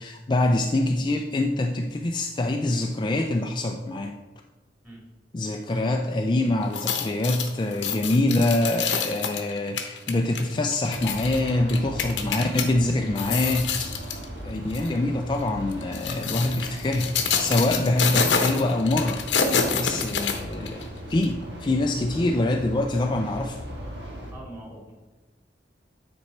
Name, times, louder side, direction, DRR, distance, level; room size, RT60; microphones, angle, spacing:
voice 1, 0.0-4.1 5.3-13.9 14.4-19.2 19.5-23.6, left 2 dB, 25° left, 3 dB, 0.4 m, -25 dB
sound 1, 6.6-12.7 13.1-14.2 14.7-14.9 15.7-20.8 21.2-21.3, left 6 dB, 85° left, 0.9 m, -27 dB
sound 2, 10.9-24.3, equal, 80° right, 1.6 m, -38 dB
voice 2, 24.2-24.9, right 1 dB, 10° right, -4 dB, 2.4 m, -43 dB
9.7 x 4.4 x 4.3 m, 1.1 s
head